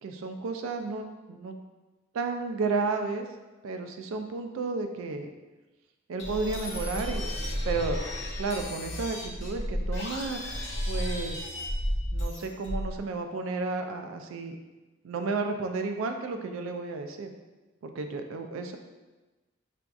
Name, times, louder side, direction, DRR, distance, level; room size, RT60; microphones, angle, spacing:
voice 1, 0.0-1.6 2.1-3.3 3.6-5.3 6.1-7.2 7.6-8.0 8.4-10.4 10.9-11.4 12.1-14.6 15.0-17.3 17.8-18.8, right 4 dB, 80° right, 6 dB, 0.3 m, -32 dB
sound 1, 6.2-13.0, equal, 60° left, 0.8 m, -33 dB
5.7 x 2.5 x 2.3 m, 1.2 s
head